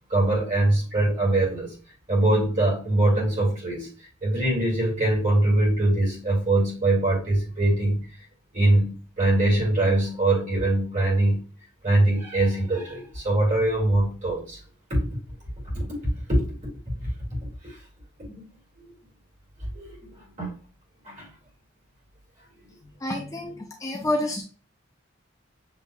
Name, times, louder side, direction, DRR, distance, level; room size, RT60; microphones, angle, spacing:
voice 1, 0.1-1.7 2.1-8.0 8.5-11.4 11.8-14.6 14.9-15.0 15.7-16.4 17.6-17.8 18.2-18.4 19.7-20.5 21.1-21.3, right 1 dB, 40° right, -3 dB, 2.2 m, -23 dB
voice 2, 23.0-24.4, left 1 dB, 15° left, 1 dB, 0.4 m, -28 dB
7.0 x 3.0 x 2.3 m, 0.38 s
head